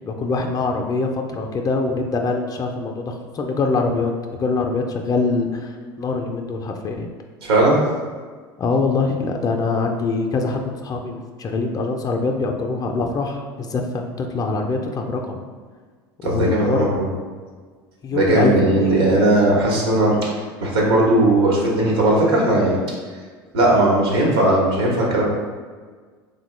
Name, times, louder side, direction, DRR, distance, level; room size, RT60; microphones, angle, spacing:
voice 1, 0.0-7.1 8.6-15.4 16.2-16.9 18.0-19.0, left 3 dB, 30° left, 3 dB, 0.4 m, -24 dB
voice 2, 7.4-7.8 16.2-17.1 18.1-22.8 23.5-25.2, right 1 dB, 85° right, -3 dB, 0.9 m, -18 dB
3.5 x 2.2 x 3.1 m, 1.5 s
hypercardioid pair, 85°, 13 cm